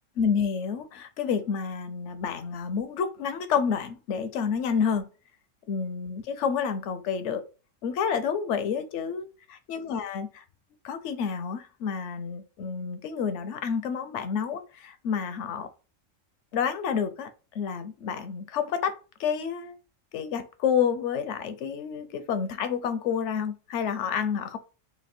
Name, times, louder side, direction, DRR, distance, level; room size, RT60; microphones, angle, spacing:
voice 1, 0.2-5.1 5.7-7.4 7.8-10.4 10.8-15.7 16.5-19.8 20.1-24.6, left 7 dB, 75° left, 0.9 m, -29 dB
3.2 x 2.8 x 4.2 m
omnidirectional pair, 1.3 m